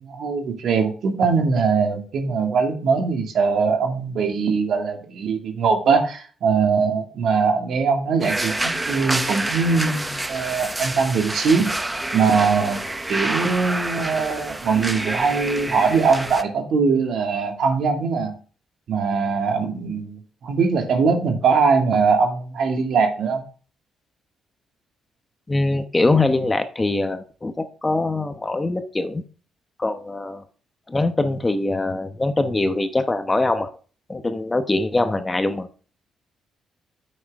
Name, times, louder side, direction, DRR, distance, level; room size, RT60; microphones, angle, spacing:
voice 1, 0.0-11.7 12.1-12.8 13.1-18.3 18.9-23.4, right 5 dB, 65° right, 3 dB, 2.3 m, -21 dB
sound 1, 8.2-16.4, right 2 dB, 15° right, 0.8 m, -28 dB
voice 2, 25.5-29.2 29.8-30.4 30.9-33.7 34.1-35.7, left 2 dB, 20° left, 9 dB, 1.0 m, -23 dB
9.3 x 7.7 x 3.6 m, 0.39 s
cardioid pair, 90°, 0 cm